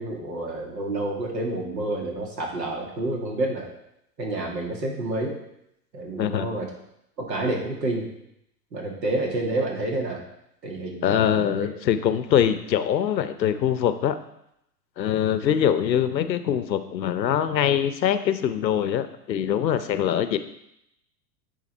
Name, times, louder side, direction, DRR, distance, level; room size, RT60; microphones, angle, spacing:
voice 1, 0.0-3.7 4.2-5.4 5.9-6.7 7.2-8.1 8.7-10.2 10.6-11.7, right 2 dB, 80° right, 0 dB, 2.2 m, -29 dB
voice 2, 11.0-14.2 15.0-20.4, left 9 dB, 85° left, 11 dB, 0.8 m, -23 dB
10.0 x 3.8 x 4.3 m, 0.79 s
hypercardioid pair, 110°, 50 cm